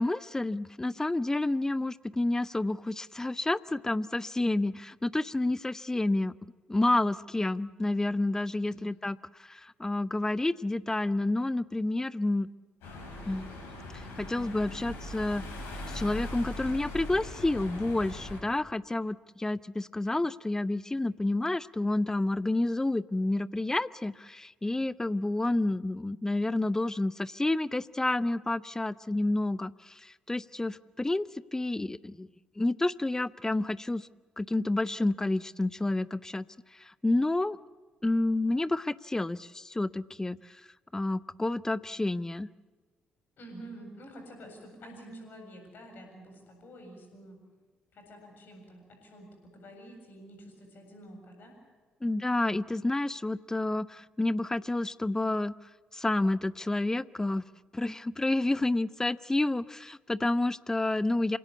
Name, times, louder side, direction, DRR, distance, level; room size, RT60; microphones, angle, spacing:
voice 1, 0.0-6.3 6.7-12.5 13.3-13.6 14.2-15.4 15.9-32.3 32.6-34.1 34.4-36.5 36.8-37.6 38.0-40.4 40.9-42.5 52.0-55.5 55.9-57.4 57.7-61.4, left 2 dB, 15° left, 18 dB, 0.6 m, -29 dB
voice 2, 8.6-9.1 43.4-47.4 47.9-51.5, right 1 dB, 50° left, 3 dB, 7.6 m, -48 dB
sound 1, 12.8-18.4, left 1 dB, 65° left, 5.9 m, -40 dB
27.0 x 17.0 x 8.4 m, 1.3 s
figure-of-eight pair, 45°, 4 cm